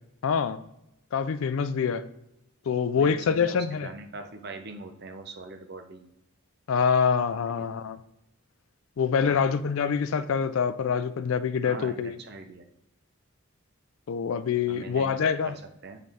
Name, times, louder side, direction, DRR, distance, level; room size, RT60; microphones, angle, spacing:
voice 1, 0.2-0.6 1.1-2.1 2.7-3.9 6.7-8.0 9.0-12.2 14.1-15.5, left 6 dB, 65° left, 14 dB, 0.3 m, -25 dB
voice 2, 2.9-6.1 7.6-7.7 9.2-9.5 11.6-12.7 14.6-16.0, right 3 dB, 45° right, 5 dB, 0.7 m, -42 dB
7.5 x 3.7 x 3.5 m, 0.87 s
head